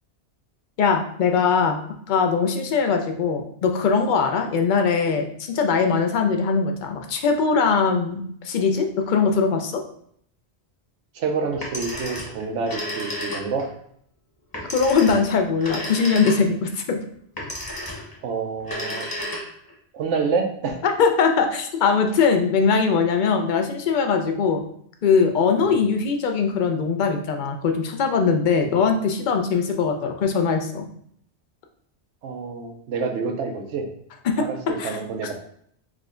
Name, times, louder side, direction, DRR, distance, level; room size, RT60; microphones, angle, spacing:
voice 1, 0.8-1.8 2.1-9.8 14.7-17.0 20.8-24.6 25.0-30.9 34.2-34.4 34.8-35.0, left 5 dB, 55° left, 4 dB, 0.6 m, -21 dB
voice 2, 11.1-13.7 18.2-19.1 19.9-20.8 25.6-25.8 28.6-28.7 32.2-33.8 34.4-35.3, right 4 dB, 85° right, 4 dB, 1.0 m, -27 dB
Telephone, 11.5-13.7 14.5-16.7 17.4-18.2 18.6-19.7, equal, 20° left, 1.0 m, -32 dB
4.9 x 2.2 x 3.6 m, 0.67 s
omnidirectional pair, 1.2 m